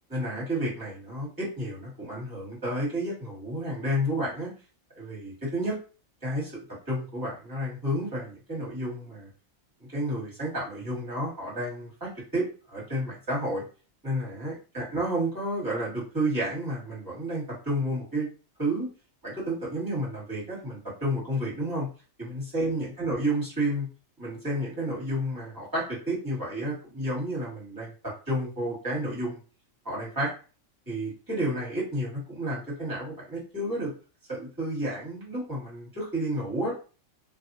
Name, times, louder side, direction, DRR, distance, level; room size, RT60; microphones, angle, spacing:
voice 1, 0.1-4.5 4.9-5.8 6.2-9.3 9.9-13.6 14.0-18.3 18.6-18.9 19.2-21.9 22.2-23.9 24.2-29.4 29.8-30.3 30.9-33.9 34.3-36.7, right 1 dB, 15° right, -5 dB, 1.5 m, -31 dB
2.6 x 2.6 x 2.6 m, 0.36 s
omnidirectional pair, 1.4 m